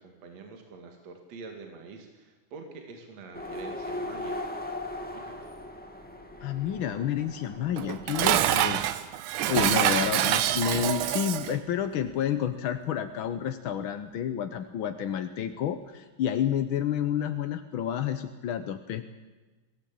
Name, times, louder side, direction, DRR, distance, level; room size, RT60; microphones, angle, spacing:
voice 1, 0.0-4.4 5.1-5.5, right 4 dB, 60° right, 4 dB, 3.2 m, -46 dB
sound 1, 3.3-8.4, left 1 dB, 5° left, 1.5 m, -38 dB
voice 2, 6.4-9.0 9.5-19.1, left 9 dB, 70° left, 9 dB, 1.2 m, -30 dB
Dishes pots and pans, 7.8-11.6, right 12 dB, 85° right, 2.3 m, -26 dB
22.5 x 17.0 x 8.6 m, 1.2 s
omnidirectional pair, 3.5 m